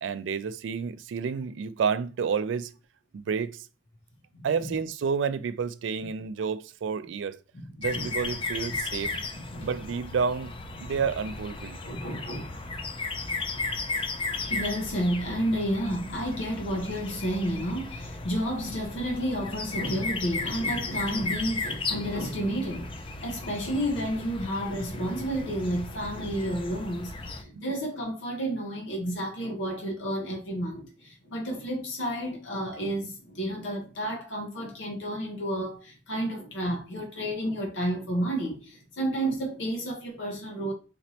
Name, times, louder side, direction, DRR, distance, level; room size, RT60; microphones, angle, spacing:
voice 1, 0.0-2.7 3.1-3.6 4.4-7.4 7.8-9.2 9.6-10.5 10.8-11.8 27.5-27.7, right 6 dB, 80° right, 0.3 m, -30 dB
voice 2, 4.3-4.7 7.5-8.1 9.3-9.7 11.8-12.7 14.5-23.0 23.2-40.7, equal, 90° left, 0.9 m, -31 dB
sound 1, 7.8-27.4, left 3 dB, 30° left, 0.4 m, -35 dB
4.2 x 3.0 x 2.8 m
head